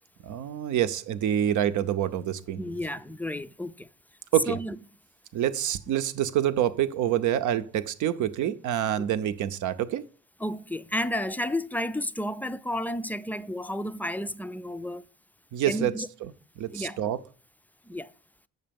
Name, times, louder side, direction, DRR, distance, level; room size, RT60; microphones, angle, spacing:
voice 1, 0.2-2.6 4.3-4.6 5.3-10.0 15.5-16.0 16.6-17.2, right 11 dB, 75° right, 0.7 m, -27 dB
voice 2, 2.6-3.9 4.5-4.8 10.4-15.0 15.7-16.1 16.7-17.0 17.9-18.1, left 1 dB, 5° left, 0.4 m, -32 dB
7.7 x 6.6 x 5.2 m
cardioid pair, 90°, 30 cm